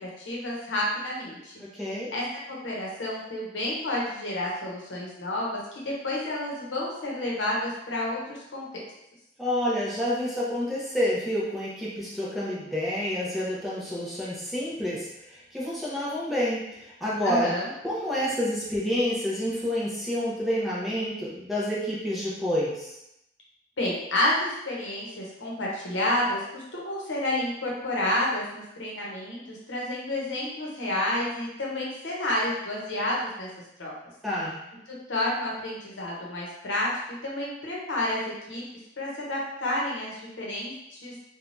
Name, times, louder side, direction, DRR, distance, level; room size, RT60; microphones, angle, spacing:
voice 1, 0.0-1.5 2.1-5.6 5.8-8.8 17.2-17.7 23.8-33.5 33.8-33.9 35.1-36.9 37.2-38.2 38.5-38.6 39.0-41.1, left 1 dB, 80° left, -4 dB, 0.8 m, -30 dB
voice 2, 1.6-2.1 9.4-17.5 17.8-23.0 34.2-34.6, equal, ahead, -8 dB, 0.6 m, -29 dB
3.2 x 2.2 x 2.5 m, 0.84 s
head